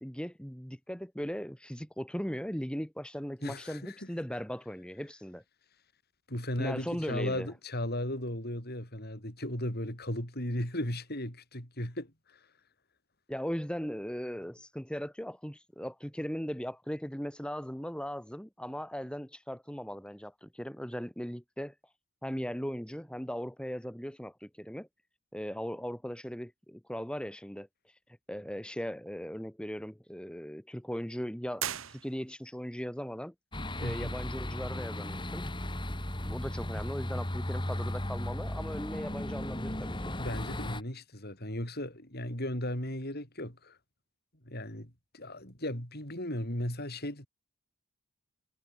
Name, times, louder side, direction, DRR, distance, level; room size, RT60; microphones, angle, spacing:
voice 1, 0.0-5.4 6.6-7.5 13.3-21.7 22.2-24.9 25.3-28.0 28.3-33.3 33.8-35.4 36.3-40.1, equal, 5° left, 2.7 m, -38 dB
voice 2, 3.4-4.1 6.3-12.4 33.8-34.1 40.2-43.8 44.4-47.3, left 1 dB, 45° left, 7.1 m, -36 dB
sound 1, 31.5-32.6, right 11 dB, 65° right, 1.1 m, -38 dB
sound 2, 33.5-40.8, left 1 dB, 20° left, 2.7 m, -36 dB
head